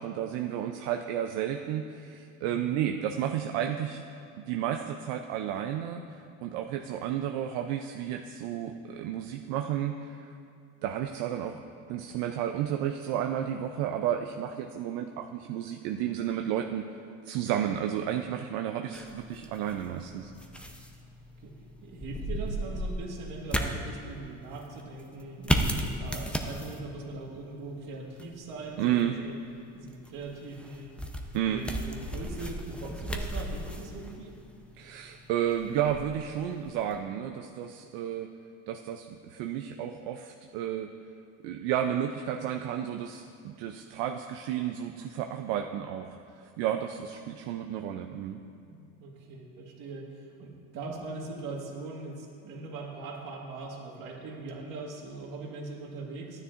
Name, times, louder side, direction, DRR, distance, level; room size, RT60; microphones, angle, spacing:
voice 1, 0.0-4.0 4.4-6.0 6.4-10.3 10.8-11.6 11.9-16.9 17.3-20.3 20.7-20.8 28.8-29.2 31.3-31.6 34.8-38.3 38.7-40.9 41.4-46.2 46.6-48.4, right 10 dB, 90° right, 4 dB, 0.5 m, -32 dB
voice 2, 2.4-2.7 18.8-19.1 21.4-21.5 21.8-29.3 29.7-30.9 31.5-34.4 48.6-56.4, right 3 dB, 70° right, 0 dB, 1.7 m, -41 dB
sound 1, 18.9-37.0, equal, 5° left, 0.6 m, -36 dB
12.5 x 9.6 x 2.5 m, 2.5 s
cardioid pair, 105°, 33 cm